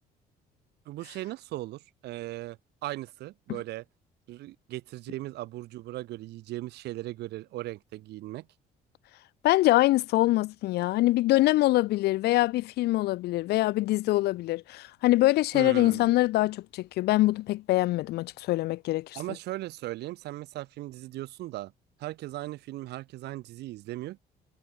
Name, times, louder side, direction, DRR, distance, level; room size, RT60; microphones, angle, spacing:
voice 1, 0.9-3.8 4.3-8.5 15.5-16.1 19.1-21.7 22.0-24.2, right 16 dB, 80° right, 3.7 m, -38 dB
voice 2, 9.4-19.2, left 17 dB, 75° left, 0.6 m, -24 dB
cardioid pair, 110°, 17 cm